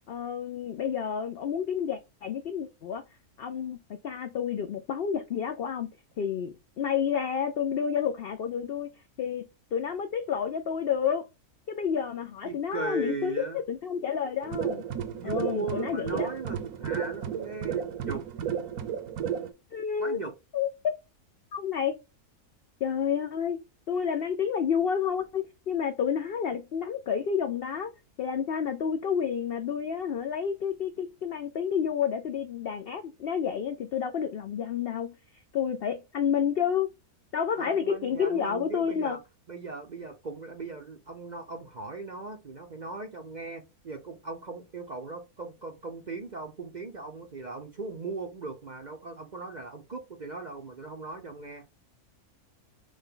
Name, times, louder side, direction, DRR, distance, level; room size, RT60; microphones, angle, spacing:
voice 1, 0.1-3.0 3.4-3.8 4.0-5.9 6.2-8.9 9.2-9.4 9.7-11.3 11.7-14.8 15.2-16.3 19.7-20.2 20.5-21.0 21.5-22.0 22.8-23.6 23.9-27.9 28.2-35.2 35.5-36.9 37.3-39.2, left 7 dB, 70° left, 0.5 m, -30 dB
voice 2, 12.4-13.6 15.2-18.2 20.0-20.3 37.6-39.2 39.5-51.6, right 3 dB, 50° right, 0.5 m, -38 dB
sound 1, 14.4-19.5, right 8 dB, 75° right, 1.2 m, -33 dB
6.3 x 2.3 x 3.7 m
omnidirectional pair, 1.6 m